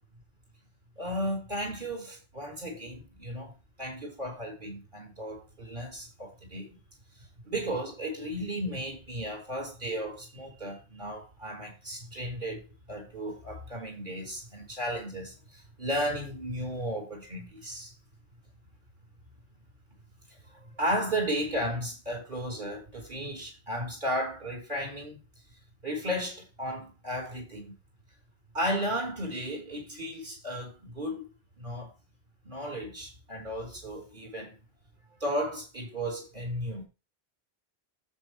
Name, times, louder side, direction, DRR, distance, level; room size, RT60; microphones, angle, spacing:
voice 1, 1.0-3.5 3.8-6.8 7.5-17.9 20.5-25.2 25.8-27.7 28.5-31.3 31.6-31.9 32.5-34.6 35.2-36.9, equal, 50° right, 5.2 m, -34 dB
9.6 x 8.2 x 3.4 m
omnidirectional pair, 1.0 m